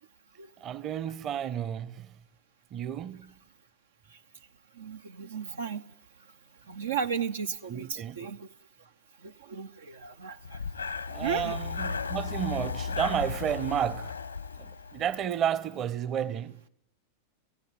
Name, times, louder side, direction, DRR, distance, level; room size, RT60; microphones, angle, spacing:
voice 1, 0.6-2.2 2.7-3.3 7.7-8.2 11.1-14.2 14.6-16.6, right 9 dB, 30° right, 1.1 m, -32 dB
voice 2, 4.7-5.8 6.7-8.5 9.2-10.8 11.2-11.6, right 6 dB, 65° right, 0.9 m, -35 dB
Breathing, 10.4-15.3, left 5 dB, 80° left, 1.2 m, -35 dB
28.0 x 16.5 x 9.7 m
figure-of-eight pair, 90°, 0 cm